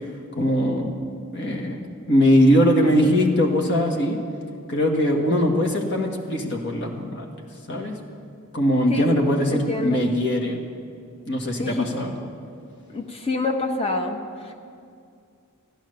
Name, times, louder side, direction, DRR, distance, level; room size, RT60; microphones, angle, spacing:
voice 1, 0.4-0.9 1.3-4.2 4.7-7.3 7.7-8.0 8.5-10.6 11.3-12.1, equal, 55° left, 2 dB, 1.7 m, -21 dB
voice 2, 9.5-10.0 11.6-11.9 12.9-14.6, left 3 dB, 25° left, 4 dB, 1.1 m, -27 dB
15.0 x 11.5 x 6.7 m, 2.4 s
head